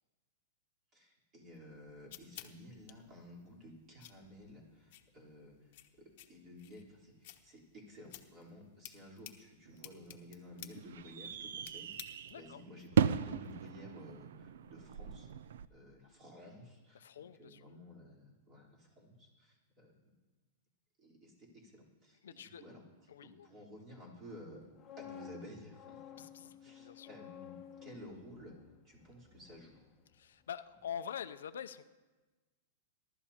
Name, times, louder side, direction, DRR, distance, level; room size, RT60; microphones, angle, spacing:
voice 1, 0.9-5.7 6.0-11.9 12.3-15.3 15.7-19.9 21.0-22.8 23.2-24.6 25.0-28.5 28.8-29.8, left 1 dB, 25° right, -3 dB, 3.8 m, -54 dB
sound 1, 1.5-12.6, left 13 dB, 55° left, 1.0 m, -56 dB
sound 2, 9.6-15.6, right 7 dB, 75° right, 0.4 m, -37 dB
voice 2, 12.3-12.6 16.9-17.7 22.2-22.6 23.1-23.5 26.0-27.1 30.1-31.9, left 8 dB, 90° left, 12 dB, 0.5 m, -46 dB
sound 3, 24.5-30.5 30.7-31.0, left 9 dB, 15° left, 1.2 m, -54 dB
22.0 x 12.0 x 2.9 m, 1.3 s
supercardioid pair, 150°, 0 cm